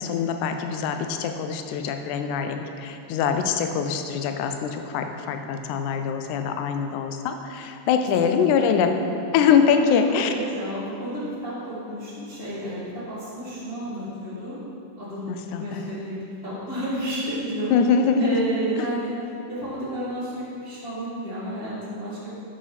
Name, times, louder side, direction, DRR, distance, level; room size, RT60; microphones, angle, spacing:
voice 1, 0.0-9.0 9.3-10.3 15.3-15.9 17.7-18.4, left 6 dB, 80° left, 6 dB, 1.9 m, -23 dB
voice 2, 8.2-8.7 9.7-14.6 14.9-17.7 18.2-19.1 19.5-22.3, right 1 dB, 25° left, -12 dB, 1.5 m, -32 dB
9.1 x 6.3 x 4.1 m, 2.8 s
omnidirectional pair, 3.7 m